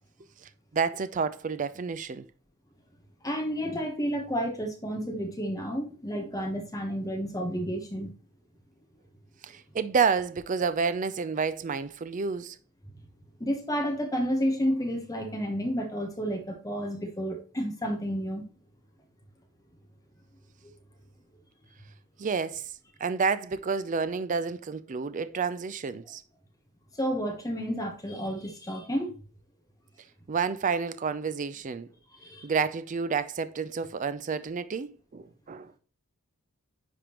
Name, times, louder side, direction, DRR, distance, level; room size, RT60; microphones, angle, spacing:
voice 1, 0.7-2.3 9.4-12.6 22.2-22.7 23.0-26.2 30.3-31.9 32.4-35.7, right 5 dB, 35° right, 0.4 m, -29 dB
voice 2, 3.2-8.1 13.4-18.5 26.9-29.2 32.1-32.5, equal, 15° left, 1.0 m, -31 dB
9.9 x 3.6 x 2.9 m
head